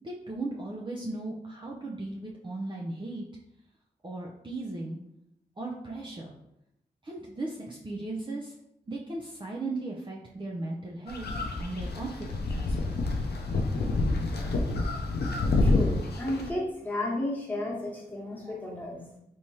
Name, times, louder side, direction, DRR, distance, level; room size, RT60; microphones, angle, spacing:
voice 1, 0.0-3.2 4.0-5.0 5.6-6.4 7.0-8.5 8.9-11.3 11.6-13.0, right 2 dB, 30° right, -3 dB, 0.5 m, -37 dB
sound 1, 11.1-16.5, left 2 dB, 75° left, 0.5 m, -28 dB
voice 2, 15.6-19.2, left 1 dB, 10° left, -4 dB, 1.2 m, -33 dB
3.3 x 3.0 x 2.8 m, 0.80 s
cardioid pair, 50°, 17 cm